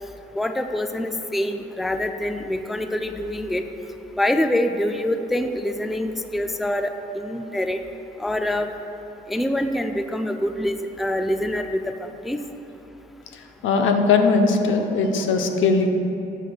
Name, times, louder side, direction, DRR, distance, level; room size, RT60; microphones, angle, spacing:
voice 1, 0.4-3.6 4.2-7.8 8.2-8.7 9.3-11.9 12.2-12.4, left 1 dB, ahead, 7 dB, 0.3 m, -25 dB
voice 2, 13.6-15.9, left 4 dB, 80° left, 5 dB, 0.7 m, -19 dB
10.5 x 8.0 x 2.3 m, 2.9 s
cardioid pair, 90°, 20 cm